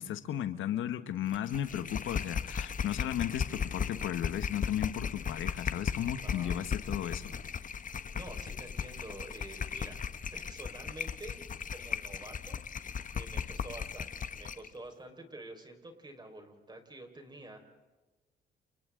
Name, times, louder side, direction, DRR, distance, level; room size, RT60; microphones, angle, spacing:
voice 1, 0.0-7.3, left 11 dB, 80° left, 11 dB, 1.4 m, -35 dB
sound 1, 1.3-14.7, left 6 dB, 40° left, 1.2 m, -37 dB
voice 2, 6.2-6.7 8.1-10.0 10.3-11.4 11.7-17.7, right 2 dB, 20° right, 4 dB, 5.0 m, -48 dB
30.0 x 30.0 x 3.9 m, 1.2 s
cardioid pair, 90°, 20 cm